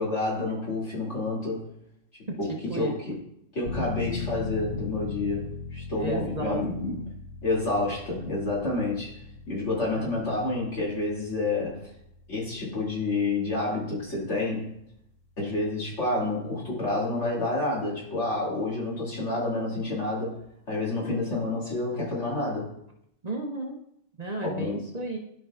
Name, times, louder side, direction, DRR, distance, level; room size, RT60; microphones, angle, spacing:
voice 1, 0.0-1.6 2.4-3.2 3.5-7.1 7.4-9.1 9.5-11.9 12.3-14.7 15.4-20.4 20.7-22.7 24.4-24.8, left 2 dB, 70° left, -6 dB, 3.0 m, -29 dB
voice 2, 2.5-2.9 6.0-6.6 10.0-10.1 23.2-23.8 24.2-25.2, right 2 dB, 40° right, 1 dB, 0.8 m, -33 dB
sound 1, 3.7-16.2 16.5-16.6, left 4 dB, 50° left, 1.0 m, -40 dB
12.5 x 5.3 x 2.4 m, 0.74 s
omnidirectional pair, 1.3 m